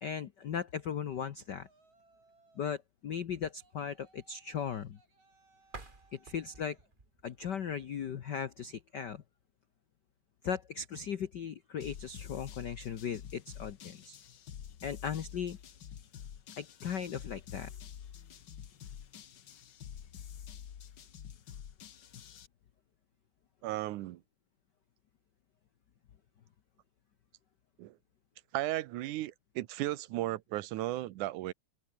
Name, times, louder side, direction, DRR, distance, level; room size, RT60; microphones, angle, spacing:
voice 1, 0.0-1.7 2.6-5.0 6.1-6.8 7.2-9.2 10.4-14.2 14.8-15.6 16.6-17.7, left 7 dB, 80° left, 0.9 m, -37 dB
Yell, 1.5-2.9 3.6-6.9, right 3 dB, 70° right, 8.8 m, -68 dB
sound 1, 5.6-8.5, right 3 dB, 20° right, 2.2 m, -53 dB
sound 2, 11.8-22.5, left 8 dB, 50° left, 1.4 m, -48 dB
voice 2, 23.6-24.2 27.8-27.9 28.5-31.5, right 16 dB, 85° right, 2.3 m, -35 dB
omnidirectional pair, 3.4 m